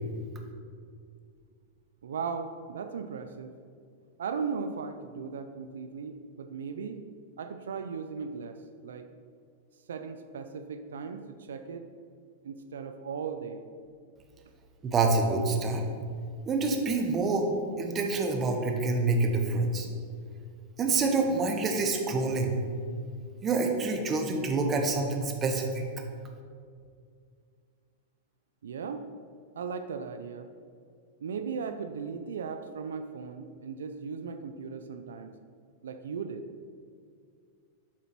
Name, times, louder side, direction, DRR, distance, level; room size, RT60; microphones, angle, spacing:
voice 1, 2.0-3.6 4.2-7.0 7.4-9.1 9.9-11.9 12.4-13.6 28.6-29.1 29.6-30.5 31.2-35.4 35.8-36.4, right 5 dB, 90° right, 8 dB, 0.4 m, -37 dB
voice 2, 14.8-15.8 16.5-17.5 17.8-19.9 20.8-22.5 23.4-25.7, right 3 dB, 25° right, 3 dB, 1.1 m, -27 dB
7.2 x 3.9 x 6.0 m, 2.2 s
hypercardioid pair, 125°, 0 cm